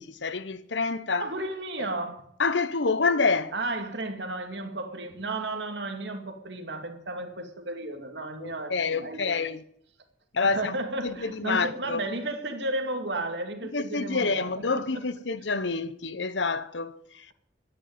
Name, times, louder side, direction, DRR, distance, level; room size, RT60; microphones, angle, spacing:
voice 1, 0.0-1.3 1.8-1.9 2.4-3.5 8.4-9.6 10.3-12.1 13.7-17.3, left 4 dB, 80° left, 1.0 m, -28 dB
voice 2, 1.2-2.2 3.5-9.4 10.4-14.8, right 2 dB, 70° right, 2.5 m, -33 dB
12.5 x 10.0 x 9.3 m
head